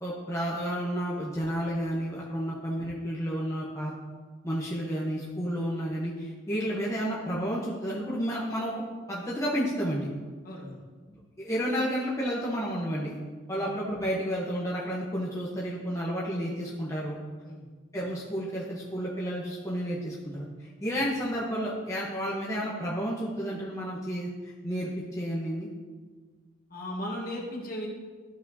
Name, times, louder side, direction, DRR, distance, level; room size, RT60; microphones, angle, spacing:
voice 1, 0.0-3.9 4.4-8.7 9.1-10.1 11.1-13.2 13.5-17.2 17.9-25.7, equal, 15° left, -6 dB, 0.8 m, -31 dB
voice 2, 10.4-10.8 13.5-13.7 17.4-17.7 26.7-27.9, left 1 dB, 45° left, -2 dB, 1.3 m, -36 dB
12.0 x 5.0 x 2.7 m, 1.4 s
head